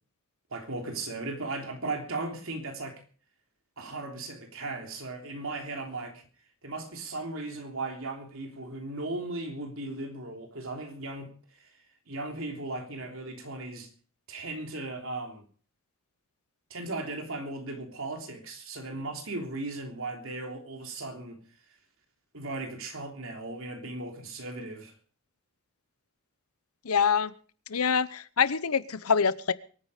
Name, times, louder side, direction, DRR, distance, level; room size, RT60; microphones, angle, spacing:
voice 1, 0.5-3.0 3.8-6.2 6.6-11.3 12.1-13.9 14.3-15.4 16.7-21.4 22.3-24.9, right 2 dB, 70° right, 3.4 m, -37 dB
voice 2, 26.8-27.3 27.7-29.5, left 6 dB, 85° left, 0.9 m, -25 dB
23.0 x 9.7 x 5.0 m
head